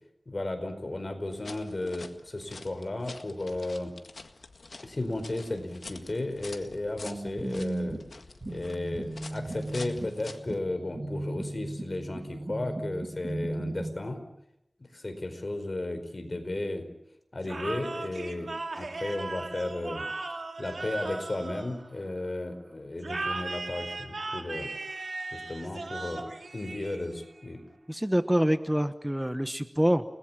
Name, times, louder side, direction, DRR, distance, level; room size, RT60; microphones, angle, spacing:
voice 1, 0.3-3.9 4.8-8.0 8.5-14.2 14.9-16.8 17.3-20.0 20.6-24.7 25.3-27.6, left 2 dB, 50° left, 7 dB, 4.7 m, -34 dB
sound 1, 1.3-10.6, left 3 dB, 90° left, 1.8 m, -47 dB
sound 2, 7.1-13.9, right 2 dB, 50° right, 3.8 m, -36 dB
sound 3, 17.4-22.3 23.0-27.4, right 3 dB, 85° right, 2.7 m, -37 dB
voice 2, 27.9-30.0, equal, 10° right, 10 dB, 1.1 m, -26 dB
30.0 x 20.0 x 7.4 m, 0.81 s
wide cardioid pair, 70°, 0 cm